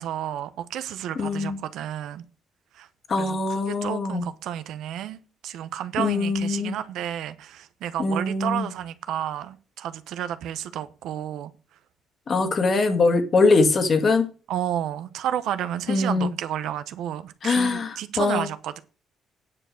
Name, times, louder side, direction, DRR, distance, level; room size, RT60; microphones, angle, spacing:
voice 1, 0.0-2.2 2.7-2.9 3.2-3.4 3.7-11.5 14.5-18.8, right 11 dB, 85° right, 0.9 m, -31 dB
voice 2, 1.2-1.6 3.1-4.3 6.0-6.8 8.0-8.7 12.3-14.3 15.9-16.3 17.4-18.5, left 3 dB, 35° left, 1.8 m, -22 dB
9.9 x 6.9 x 6.4 m
cardioid pair, 155°, 0 cm